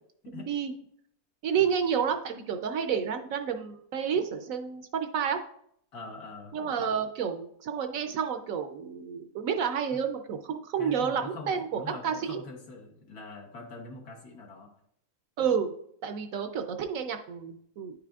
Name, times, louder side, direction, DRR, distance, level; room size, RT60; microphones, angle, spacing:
voice 1, 0.3-0.7 1.4-5.4 6.5-12.4 15.4-15.7 16.0-17.9, right 7 dB, 70° right, 7 dB, 0.9 m, -30 dB
voice 2, 5.9-6.5 9.9-10.0 10.8-14.7, left 3 dB, 80° left, 0 dB, 1.6 m, -43 dB
9.9 x 5.0 x 2.3 m, 0.68 s
omnidirectional pair, 1.6 m